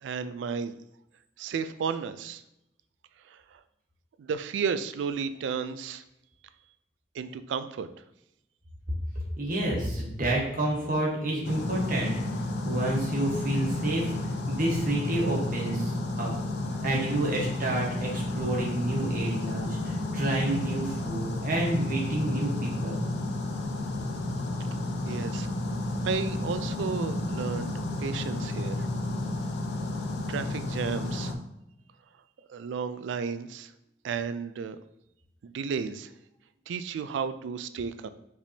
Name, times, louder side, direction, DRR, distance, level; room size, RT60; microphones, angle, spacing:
voice 1, 0.0-0.7 1.4-2.4 3.3-3.6 4.2-6.0 7.1-7.9 25.0-25.5 26.0-28.9 30.3-31.3 32.5-33.7 34.0-34.8 35.4-36.1 36.7-38.1, right 6 dB, 85° right, 12 dB, 0.3 m, -33 dB
voice 2, 9.4-14.1 14.5-16.3 16.8-23.1, right 1 dB, 50° right, -2 dB, 1.2 m, -29 dB
sound 1, 11.4-31.3, left 2 dB, 65° left, 0.6 m, -31 dB
5.0 x 3.4 x 2.7 m, 0.84 s
head